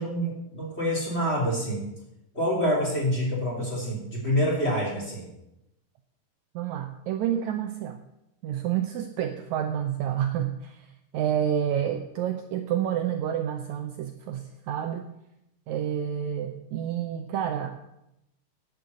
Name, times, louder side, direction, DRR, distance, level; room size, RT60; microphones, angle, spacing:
voice 1, 0.0-1.8 2.3-5.3, equal, 20° left, -3 dB, 3.3 m, -27 dB
voice 2, 6.6-8.0 8.4-10.9 11.1-15.1 15.7-17.8, right 10 dB, 80° right, 6 dB, 1.8 m, -29 dB
11.5 x 7.0 x 8.2 m, 0.87 s
omnidirectional pair, 3.9 m